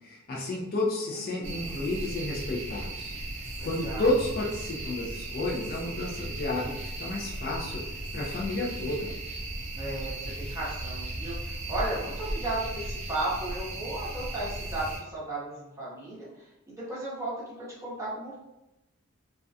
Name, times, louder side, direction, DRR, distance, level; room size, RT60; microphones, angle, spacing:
voice 1, 0.0-9.1, left 2 dB, 45° left, -3 dB, 0.4 m, -31 dB
voice 2, 1.1-1.7 3.6-4.1 9.7-18.4, right 2 dB, 15° right, -8 dB, 0.8 m, -35 dB
sound 1, 1.4-15.0, right 1 dB, 30° right, 0.4 m, -36 dB
2.3 x 2.2 x 2.6 m, 0.95 s
head